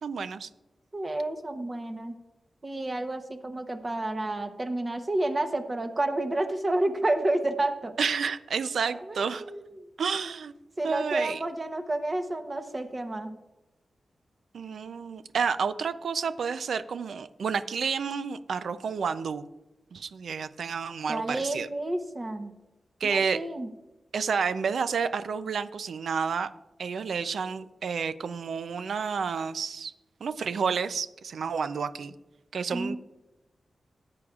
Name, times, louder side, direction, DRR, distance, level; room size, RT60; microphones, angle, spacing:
voice 1, 0.0-0.5 8.0-9.4 10.0-10.5 10.8-11.4 14.5-19.5 19.9-21.7 23.0-23.4 24.1-26.5 26.8-29.9 30.2-32.1 32.5-33.0, right 6 dB, 80° right, 12 dB, 0.5 m, -30 dB
voice 2, 0.9-2.2 2.6-7.9 9.1-9.8 10.8-13.4 21.1-22.5 23.0-23.7 32.7-33.0, right 2 dB, 30° right, 7 dB, 0.9 m, -30 dB
18.0 x 8.7 x 2.4 m, 1.0 s
wide cardioid pair, 135°, 0 cm